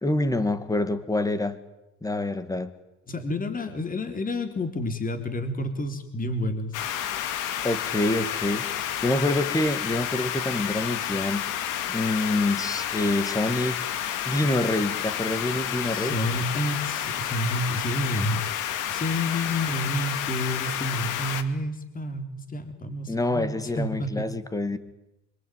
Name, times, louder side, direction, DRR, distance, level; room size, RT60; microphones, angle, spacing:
voice 1, 0.0-1.6 2.0-2.7 7.6-11.4 11.9-16.2 23.1-24.8, left 2 dB, 10° left, 12 dB, 2.2 m, -26 dB
voice 2, 3.1-6.8 15.8-18.4 18.9-24.3, left 1 dB, 25° left, 7 dB, 3.7 m, -29 dB
sound 1, 6.7-21.4, left 10 dB, 80° left, 2.4 m, -30 dB
26.0 x 24.0 x 9.4 m, 0.93 s
cardioid pair, 115°, 31 cm